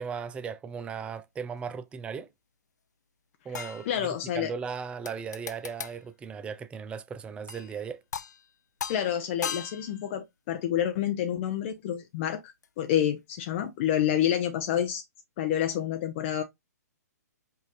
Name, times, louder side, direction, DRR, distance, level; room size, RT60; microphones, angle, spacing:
voice 1, 0.0-2.3 3.4-8.0, right 6 dB, 10° right, 0.4 m, -37 dB
sound 1, 3.5-4.4 5.1-6.0 7.5-7.8 8.1-8.5 8.8-10.1 12.6-12.7, left 7 dB, 80° left, 0.5 m, -38 dB
voice 2, 3.9-4.5 8.9-15.0 15.4-16.4, left 10 dB, 45° left, 0.7 m, -28 dB
5.4 x 2.5 x 3.9 m
hypercardioid pair, 130°, 9 cm